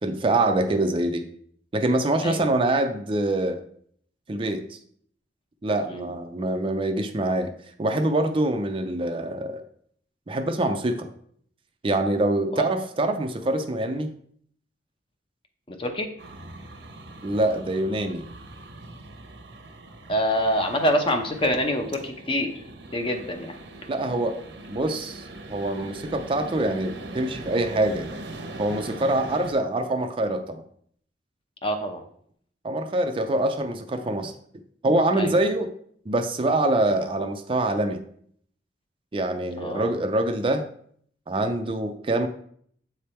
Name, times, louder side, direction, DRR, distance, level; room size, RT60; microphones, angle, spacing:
voice 1, 0.0-1.2 1.7-3.6 4.3-4.8 5.6-7.5 7.8-9.6 10.3-11.1 11.8-14.1 17.2-18.3 23.9-24.4 24.7-28.1 28.6-30.6 32.6-34.3 34.8-35.7 36.1-38.0 39.1-40.6 41.3-42.3, right 2 dB, 30° right, 6 dB, 0.4 m, -25 dB
voice 2, 15.7-16.1 20.1-22.5 22.9-23.6 31.6-32.0 35.2-35.3 39.6-39.9, equal, 30° left, 5 dB, 0.8 m, -25 dB
sound 1, 16.2-29.5, right 2 dB, 80° right, 0.8 m, -41 dB
7.8 x 3.4 x 4.3 m, 0.64 s
head